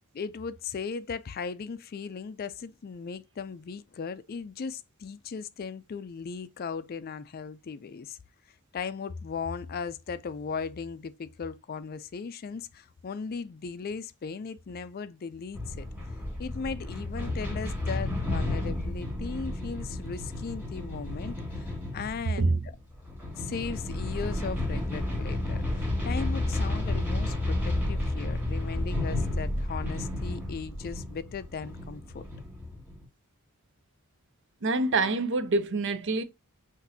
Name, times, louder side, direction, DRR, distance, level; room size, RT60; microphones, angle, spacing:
voice 1, 0.1-8.2 8.7-15.9 16.4-22.7 23.3-32.2, left 5 dB, 45° left, 0.4 m, -37 dB
sound 1, 15.5-33.0, left 1 dB, 10° right, 1.9 m, -32 dB
voice 2, 34.6-36.2, right 3 dB, 55° right, 0.6 m, -26 dB
6.0 x 2.6 x 2.7 m
head